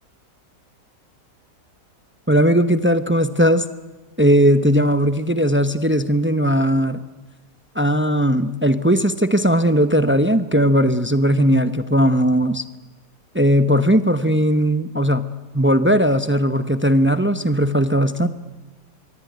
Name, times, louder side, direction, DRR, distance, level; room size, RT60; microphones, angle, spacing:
voice 1, 2.3-3.6 4.2-7.0 7.8-12.6 13.3-15.3 15.5-18.3, equal, 20° right, 11 dB, 0.3 m, -18 dB
24.5 x 23.5 x 9.3 m, 1.2 s
omnidirectional pair, 1.9 m